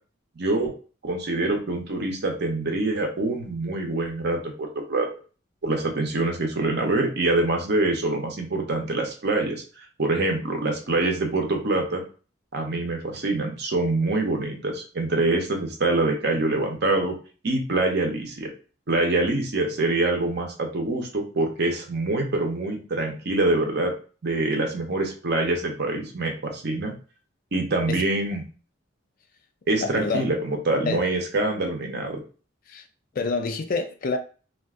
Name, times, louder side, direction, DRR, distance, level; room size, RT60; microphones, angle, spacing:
voice 1, 0.4-0.7 1.0-5.1 5.6-12.0 12.5-17.1 17.4-18.5 18.9-23.9 24.2-26.9 27.5-28.4 29.7-32.2, right 2 dB, 55° right, 0.7 m, -25 dB
voice 2, 29.8-30.3 30.9-31.0 32.7-32.9 33.1-34.2, left 4 dB, 45° left, 0.4 m, -27 dB
2.5 x 2.4 x 3.5 m
head